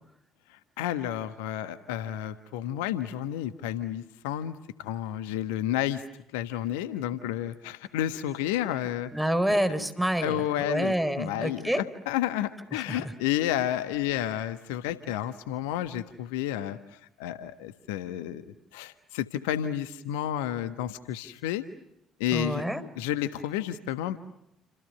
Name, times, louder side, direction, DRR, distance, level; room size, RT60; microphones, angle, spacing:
voice 1, 0.8-6.0 6.3-9.1 10.2-16.8 17.2-18.4 18.7-21.6 22.2-22.6 23.0-24.2, left 12 dB, 65° left, 12 dB, 1.3 m, -31 dB
voice 2, 9.1-11.8 12.9-13.0 22.3-22.8, right 1 dB, 5° right, 11 dB, 4.6 m, -27 dB
29.5 x 27.0 x 6.7 m, 0.80 s
figure-of-eight pair, 50°, 0 cm